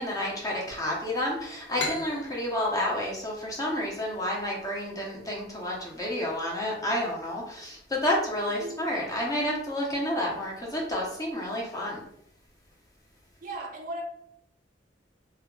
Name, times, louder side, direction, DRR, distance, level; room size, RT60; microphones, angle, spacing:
voice 1, 0.0-12.0, left 1 dB, 20° left, -3 dB, 0.6 m, -30 dB
sound 1, 1.8-5.2, left 3 dB, 65° left, 0.5 m, -38 dB
voice 2, 8.6-9.0 13.4-14.0, right 1 dB, 45° right, 1 dB, 0.5 m, -37 dB
2.2 x 2.2 x 3.6 m, 0.72 s
head